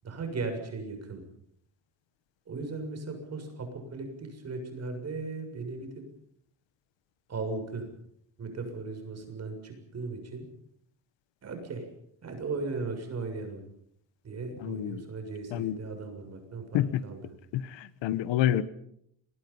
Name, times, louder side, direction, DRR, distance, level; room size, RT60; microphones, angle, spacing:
voice 1, 0.0-1.2 2.5-6.0 7.3-7.9 8.4-10.5 11.4-11.9 12.2-13.6 14.2-17.3, right 3 dB, 35° right, 6 dB, 7.0 m, -37 dB
voice 2, 14.6-15.0 15.5-15.8 16.7-17.0 17.5-18.6, left 12 dB, 75° left, 15 dB, 1.4 m, -28 dB
28.5 x 22.0 x 5.6 m, 0.71 s
cardioid pair, 160°, 45 cm